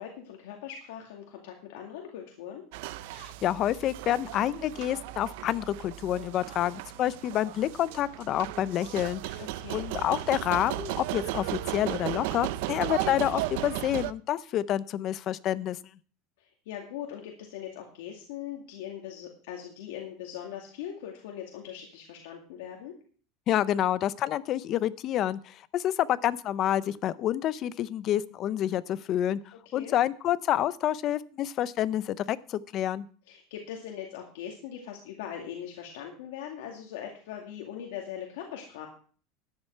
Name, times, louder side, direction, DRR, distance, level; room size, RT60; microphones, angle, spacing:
voice 1, 0.0-2.6 9.4-9.8 16.4-22.9 29.7-29.9 33.3-38.9, left 9 dB, 85° left, 0 dB, 2.3 m, -41 dB
sound 1, 2.7-14.1, right 15 dB, 70° right, 0.5 m, -36 dB
voice 2, 3.2-9.4 9.7-15.8 23.5-33.1, left 12 dB, 40° left, 17 dB, 0.6 m, -28 dB
13.0 x 9.8 x 4.6 m, 0.43 s
supercardioid pair, 150°, 0 cm